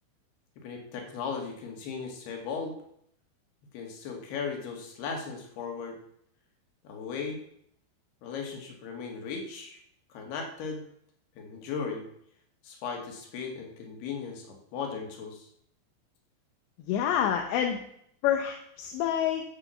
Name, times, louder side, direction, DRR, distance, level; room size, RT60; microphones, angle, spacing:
voice 1, 0.6-2.8 3.7-6.0 6.8-7.4 8.2-9.8 10.1-10.9 11.4-12.1 12.6-15.5, left 5 dB, 65° left, 2 dB, 4.0 m, -37 dB
voice 2, 16.9-17.8 18.2-19.4, left 9 dB, 80° left, 4 dB, 3.1 m, -27 dB
14.0 x 6.2 x 7.0 m, 0.70 s
omnidirectional pair, 5.1 m